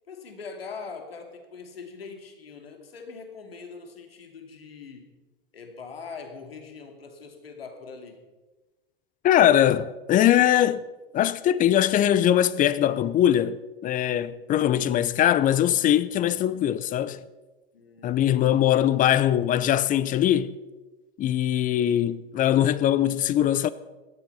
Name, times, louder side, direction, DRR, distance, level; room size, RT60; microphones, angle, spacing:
voice 1, 0.1-5.1 5.5-8.2 17.7-18.5, left 5 dB, 85° left, 2.7 m, -42 dB
voice 2, 9.2-10.8 11.1-17.2 18.0-20.6 21.2-23.7, left 11 dB, 30° left, 0.7 m, -21 dB
17.5 x 13.0 x 5.6 m
hypercardioid pair, 105°, 29 cm